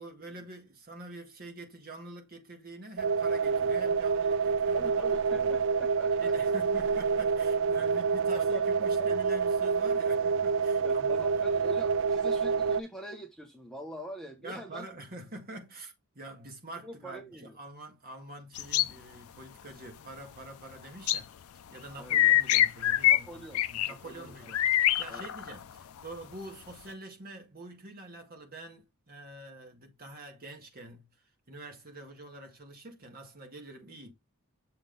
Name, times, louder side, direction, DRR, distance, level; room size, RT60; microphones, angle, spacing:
voice 1, 0.0-4.9 5.4-5.5 6.2-11.4 14.4-21.3 21.7-31.1 31.5-34.1, right 2 dB, 40° right, 1.8 m, -46 dB
sound 1, 3.0-12.8, right 5 dB, 55° right, 0.4 m, -27 dB
voice 2, 4.7-6.3 8.3-9.2 10.8-14.9 16.8-17.6 22.0-22.2 23.1-24.5 25.1-25.3, equal, 5° left, 0.9 m, -44 dB
sound 2, 18.6-18.9 21.1-21.2 22.1-23.2 23.5-23.9 24.5-25.5, left 13 dB, 70° left, 0.4 m, -24 dB
6.9 x 3.6 x 3.9 m
head